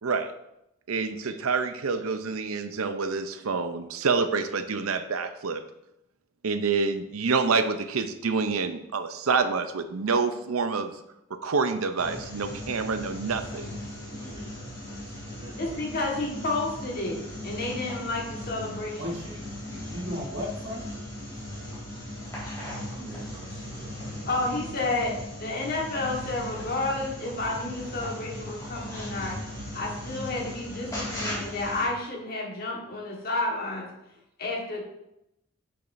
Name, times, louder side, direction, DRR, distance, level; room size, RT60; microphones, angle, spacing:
voice 1, 0.9-5.6 6.4-10.9 11.3-13.7, right 4 dB, 85° right, 9 dB, 0.6 m, -27 dB
sound 1, 12.0-31.9, left 1 dB, 15° left, 3.0 m, -38 dB
voice 2, 13.4-16.3 22.9-24.9, right 1 dB, 25° right, -5 dB, 2.3 m, -49 dB
voice 3, 15.6-19.2 24.2-29.4 29.7-33.9 34.4-34.8, left 2 dB, 45° left, -1 dB, 1.6 m, -31 dB
voice 4, 19.0-20.9, left 1 dB, 60° right, -3 dB, 1.4 m, -36 dB
8.8 x 6.8 x 2.7 m, 0.84 s
head